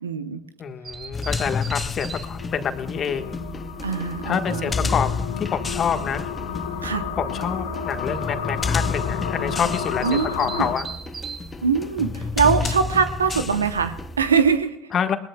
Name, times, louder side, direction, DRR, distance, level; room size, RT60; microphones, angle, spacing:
voice 1, 0.0-0.4 3.8-4.9 6.8-7.0 10.0-10.6 11.6-14.8, right 6 dB, 90° right, 11 dB, 0.9 m, -22 dB
voice 2, 0.6-3.4 4.2-6.3 7.1-10.9 14.9-15.2, left 7 dB, 40° left, 8 dB, 1.5 m, -27 dB
sound 1, 0.8-14.6, right 3 dB, 35° right, 2.1 m, -39 dB
sound 2, 1.1-14.3, left 5 dB, 25° left, 0.4 m, -31 dB
sound 3, 1.8-10.7, left 7 dB, 80° left, 1.7 m, -32 dB
20.5 x 20.5 x 2.3 m, 0.87 s
hypercardioid pair, 65°, 0 cm